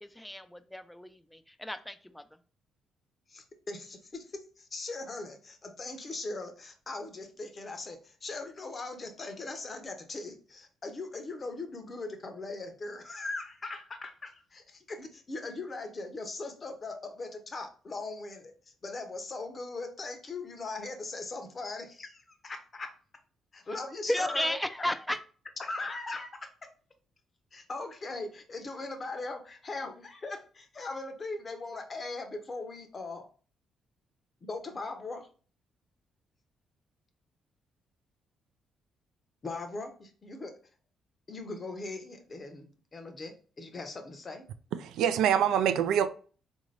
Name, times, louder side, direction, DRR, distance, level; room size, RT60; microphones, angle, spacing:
voice 1, 0.0-2.2 24.1-25.2, left 1 dB, 5° left, 0.4 m, -33 dB
voice 2, 3.3-22.9 23.5-24.6 25.6-26.7 27.5-33.3 34.5-35.3 39.4-40.6 41.3-44.5, left 3 dB, 35° left, 0.7 m, -40 dB
voice 3, 44.8-46.1, right 9 dB, 85° right, 0.3 m, -25 dB
3.7 x 2.6 x 3.2 m
cardioid pair, 90°, 0 cm